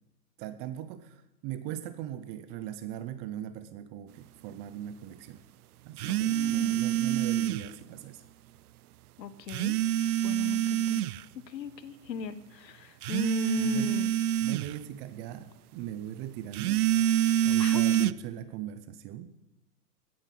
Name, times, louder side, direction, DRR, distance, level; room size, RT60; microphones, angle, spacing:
voice 1, 0.4-5.4 5.9-8.2 13.6-14.0 14.4-16.8 17.4-19.3, right 11 dB, 20° right, 13 dB, 0.5 m, -39 dB
voice 2, 6.0-6.7 9.2-9.8 10.2-11.1 11.5-14.1 17.6-18.2, left 8 dB, 80° left, 14 dB, 1.3 m, -38 dB
sound 1, 6.0-7.7 9.5-11.2 13.0-14.7 16.5-18.1, right 11 dB, 65° right, 0.6 m, -26 dB
16.5 x 9.0 x 5.9 m, 0.91 s
hypercardioid pair, 130°, 49 cm